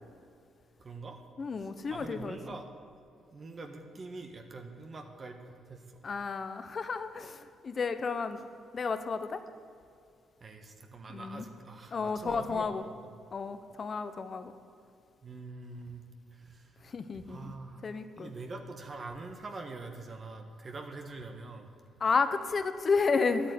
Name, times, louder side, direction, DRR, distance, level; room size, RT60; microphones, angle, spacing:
voice 1, 0.8-1.2 1.6-2.7 3.3-6.0 10.4-12.8 15.2-16.0 16.3-16.8 17.1-17.9 18.2-21.7, right 3 dB, 40° right, 5 dB, 1.4 m, -44 dB
voice 2, 1.4-2.4 6.0-8.5 8.7-9.4 11.1-11.5 11.9-12.8 13.3-14.5 16.8-17.5 17.8-18.3 22.0-23.5, left 4 dB, 40° left, 10 dB, 1.0 m, -32 dB
11.0 x 8.7 x 9.5 m, 2.5 s
cardioid pair, 90°, 0 cm